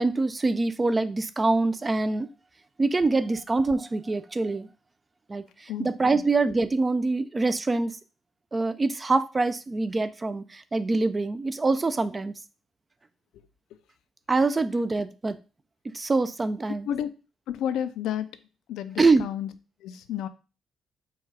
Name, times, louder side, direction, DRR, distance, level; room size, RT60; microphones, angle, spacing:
voice 1, 0.0-2.3 2.8-4.7 5.3-8.0 8.5-12.3 14.3-15.4 15.9-16.9 19.0-19.2, right 3 dB, 25° right, 0.4 m, -25 dB
voice 2, 17.5-18.3 18.7-19.5 19.8-20.3, left 10 dB, 85° left, 0.4 m, -31 dB
4.6 x 2.4 x 4.7 m
cardioid pair, 90°, 0 cm